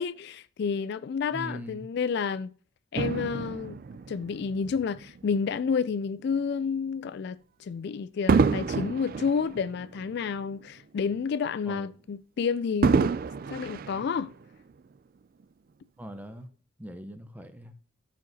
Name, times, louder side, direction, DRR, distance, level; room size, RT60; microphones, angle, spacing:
voice 1, 0.0-2.5 2.9-3.8 4.1-13.1 13.5-14.3, left 6 dB, 55° left, 0.3 m, -30 dB
voice 2, 1.3-1.9 11.7-11.9 16.0-16.5 16.8-17.8, equal, 10° right, 0.7 m, -41 dB
Fireworks, 3.0-5.5 6.2-6.4 8.3-10.8 11.2-11.3 12.8-14.7 15.4-15.5, right 4 dB, 45° right, 0.3 m, -28 dB
13.0 x 5.1 x 2.7 m
head